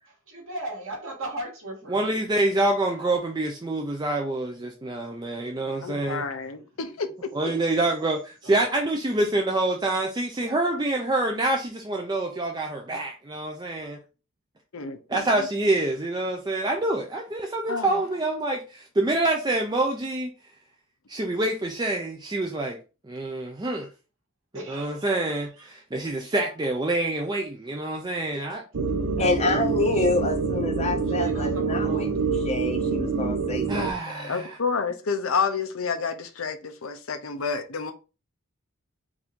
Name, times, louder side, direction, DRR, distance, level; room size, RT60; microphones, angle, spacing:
voice 1, 0.3-2.3 3.0-3.2 5.7-6.5 8.4-8.6 24.5-25.6 28.7-29.6 29.9-30.1 31.2-32.2, right 1 dB, 65° right, 2.2 m, -39 dB
voice 2, 1.9-6.2 7.3-14.0 15.1-20.3 21.1-22.8 23.1-23.9 24.7-28.6 33.7-34.6, right 2 dB, 20° right, 0.5 m, -26 dB
voice 3, 5.8-7.1 7.4-7.5 14.7-15.5 17.7-18.0 29.2-29.3 34.3-37.9, left 5 dB, 70° left, 0.7 m, -29 dB
sound 1, 28.7-33.9, right 4 dB, 90° right, 0.8 m, -26 dB
voice 4, 29.2-32.1 32.4-33.9 34.1-34.3, left 3 dB, 30° left, 0.6 m, -27 dB
4.9 x 2.7 x 3.6 m
head